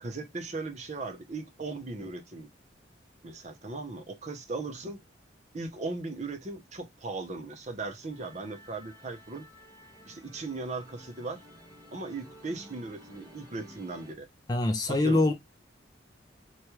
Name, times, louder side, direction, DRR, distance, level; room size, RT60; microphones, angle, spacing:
voice 1, 0.0-2.5 3.2-5.0 5.5-9.4 10.0-11.4 11.9-14.3 14.9-15.2, right 3 dB, 35° right, 0.6 m, -38 dB
Musical instrument, 8.1-14.1, left 1 dB, 20° right, 1.1 m, -53 dB
voice 2, 14.5-15.3, left 2 dB, 20° left, 0.3 m, -24 dB
3.0 x 2.3 x 2.9 m
head